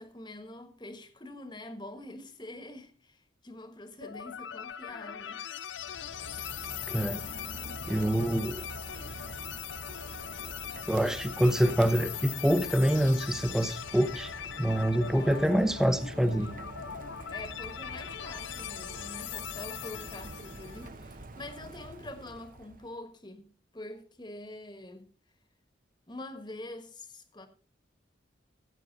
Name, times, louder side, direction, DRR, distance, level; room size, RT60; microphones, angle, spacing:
voice 1, 0.0-5.4 15.0-16.9 17.3-25.1 26.1-27.5, left 1 dB, 25° left, 1.3 m, -45 dB
sound 1, 4.0-20.9, left 10 dB, 70° left, 0.4 m, -41 dB
Rain, 5.7-23.0, right 2 dB, 45° right, 0.8 m, -46 dB
voice 2, 6.9-7.3 7.9-8.6 10.9-14.3 14.6-16.5, equal, 5° right, 0.7 m, -26 dB
14.0 x 8.2 x 4.0 m
head